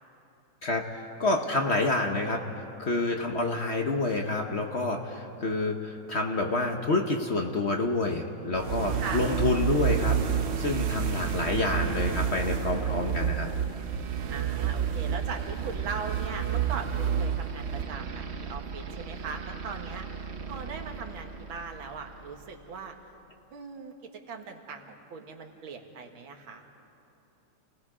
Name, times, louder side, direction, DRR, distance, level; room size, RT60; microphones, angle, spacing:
voice 1, 0.6-2.5 2.8-13.5, left 2 dB, 45° left, 3 dB, 1.0 m, -28 dB
sound 1, 8.5-22.4, right 8 dB, 60° right, 0.7 m, -31 dB
voice 2, 14.3-20.1 20.5-22.9 23.5-23.9 24.3-26.7, right 5 dB, 85° right, 3 dB, 2.2 m, -39 dB
29.0 x 18.5 x 4.9 m, 2.8 s
omnidirectional pair, 2.1 m